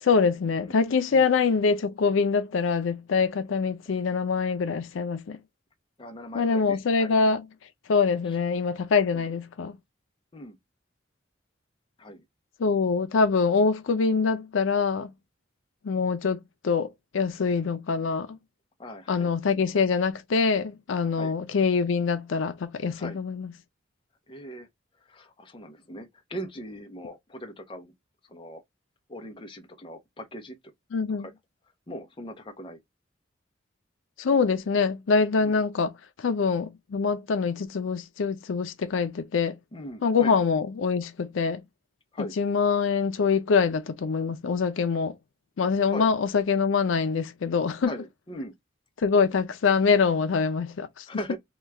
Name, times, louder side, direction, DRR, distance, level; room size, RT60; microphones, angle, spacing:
voice 1, 0.0-5.4 6.3-7.4 7.9-9.8 12.6-15.1 15.8-16.4 16.6-18.4 19.1-23.5 30.9-31.3 34.2-39.6 40.0-41.6 42.4-45.1 45.6-47.9 49.0-51.0, left 5 dB, 85° left, 0.5 m, -24 dB
voice 2, 6.0-7.1 8.2-8.4 9.1-9.2 10.3-10.6 12.0-12.2 18.8-19.6 21.1-21.3 22.9-23.2 24.3-24.7 25.0-27.9 28.3-28.6 29.1-30.6 31.1-31.3 31.9-32.8 35.4-35.6 39.7-40.4 42.1-42.3 45.9-46.1 47.8-48.5 51.1-51.4, equal, 25° left, 0.6 m, -40 dB
3.0 x 2.3 x 3.2 m
head